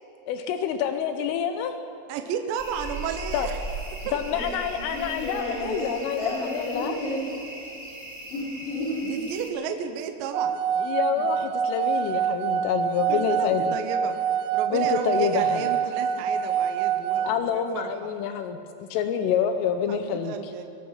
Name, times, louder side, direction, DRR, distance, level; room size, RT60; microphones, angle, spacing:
voice 1, 0.3-1.7 3.3-3.5 4.1-7.0 10.8-13.8 14.7-15.7 17.2-18.6 18.9-20.3, left 8 dB, 85° left, 7 dB, 3.5 m, -27 dB
voice 2, 2.1-3.6 4.1-4.2 9.0-10.6 13.1-14.1 14.5-17.9 19.9-20.7, right 7 dB, 75° right, 6 dB, 3.1 m, -33 dB
sound 1, 2.6-9.5, right 1 dB, 5° right, 2.2 m, -38 dB
voice 3, 4.9-7.4 8.3-9.2 11.1-11.2, equal, 60° left, -9 dB, 7.0 m, -32 dB
sound 2, 10.3-17.4, right 8 dB, 90° right, 3.7 m, -26 dB
26.0 x 21.5 x 5.7 m, 2.7 s
omnidirectional pair, 5.7 m